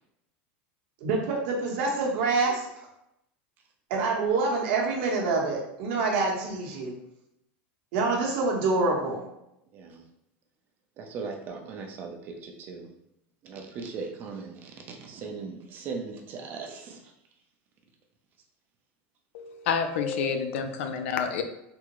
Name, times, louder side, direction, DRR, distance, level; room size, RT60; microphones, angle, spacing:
voice 1, 1.0-2.7 3.9-6.9 7.9-9.3, right 3 dB, 55° right, -1 dB, 0.8 m, -26 dB
voice 2, 9.7-10.0 11.0-12.9 13.4-17.1, right 4 dB, 30° right, 2 dB, 0.5 m, -39 dB
voice 3, 19.3-21.4, left 6 dB, 85° left, 7 dB, 0.4 m, -28 dB
3.5 x 2.0 x 2.9 m, 0.84 s
supercardioid pair, 165°, 6 cm